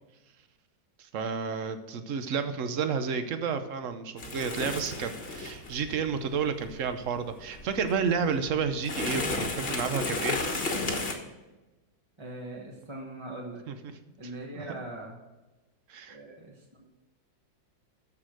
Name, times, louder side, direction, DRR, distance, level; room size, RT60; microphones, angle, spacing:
voice 1, 1.1-10.4 13.7-14.0 15.9-16.2, right 6 dB, 55° right, 9 dB, 0.9 m, -31 dB
sound 1, 4.2-11.1, left 3 dB, 35° left, 1.3 m, -34 dB
voice 2, 12.2-13.6 14.2-15.2 16.1-16.9, right 1 dB, 20° right, -2 dB, 0.9 m, -41 dB
13.0 x 4.9 x 6.3 m, 1.1 s
omnidirectional pair, 2.1 m